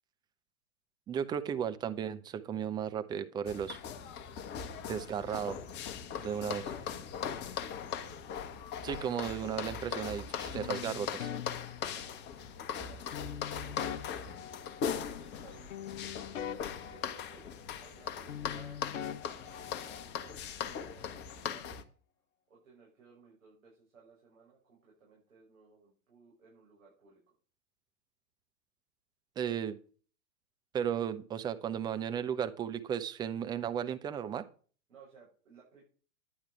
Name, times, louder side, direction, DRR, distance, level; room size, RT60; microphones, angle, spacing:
voice 1, 1.1-3.8 4.9-5.6 6.2-6.6 8.8-11.3 29.4-29.8 30.7-34.5, right 8 dB, 10° right, 10 dB, 0.5 m, -35 dB
sound 1, 3.5-21.8, left 7 dB, 25° left, 1.1 m, -40 dB
voice 2, 4.7-5.3 6.0-8.7 11.6-13.0 13.4-14.4 15.0-15.9 16.9-21.8 22.5-27.2 34.9-35.8, right 5 dB, 65° right, -4 dB, 7.1 m, -60 dB
sound 2, 10.5-12.5 13.1-15.4 15.7-18.0 18.3-20.3, left 9 dB, 60° left, 0.8 m, -43 dB
10.5 x 10.5 x 4.6 m, 0.40 s
figure-of-eight pair, 105°, 42 cm